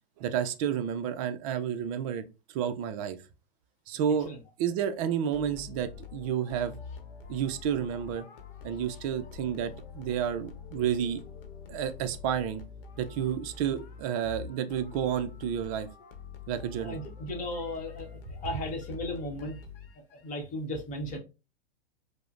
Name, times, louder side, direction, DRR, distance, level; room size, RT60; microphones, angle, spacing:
voice 1, 0.2-2.2 2.5-3.2 3.9-4.3 4.6-6.8 7.3-8.2 8.6-11.2 11.7-12.6 13.0-15.9 16.5-17.0, right 9 dB, 35° right, 10 dB, 0.4 m, -30 dB
sound 1, 5.3-20.2, left 6 dB, 65° left, 0.9 m, -46 dB
voice 2, 16.7-19.6 20.2-21.2, left 1 dB, 25° left, 2 dB, 1.0 m, -36 dB
4.8 x 2.1 x 2.4 m, 0.29 s
hypercardioid pair, 110°, 30 cm